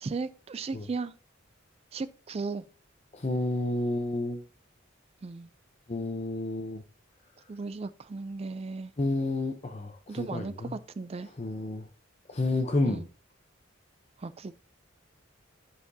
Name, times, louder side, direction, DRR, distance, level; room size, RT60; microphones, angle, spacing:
voice 1, 0.0-1.1 1.9-2.6 5.2-5.5 7.5-8.9 10.1-11.3 12.8-13.1 14.2-14.6, right 4 dB, 30° right, 0.3 m, -36 dB
voice 2, 3.1-4.4 5.9-6.8 9.0-10.7 11.4-11.9 12.3-13.0, left 2 dB, 35° left, 0.7 m, -30 dB
11.0 x 5.7 x 2.7 m
head